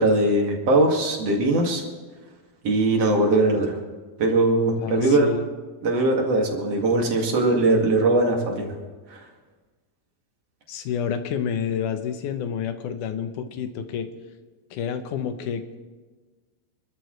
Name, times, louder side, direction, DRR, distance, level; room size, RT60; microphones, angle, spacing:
voice 1, 0.0-1.8 2.6-3.8 4.2-5.3 5.8-8.7 9.1-9.2, right 2 dB, 45° right, 0 dB, 2.9 m, -20 dB
voice 2, 4.8-5.5 10.7-14.1 14.7-15.8, left 7 dB, 70° left, 8 dB, 2.1 m, -29 dB
27.5 x 12.5 x 3.3 m, 1.4 s
omnidirectional pair, 4.4 m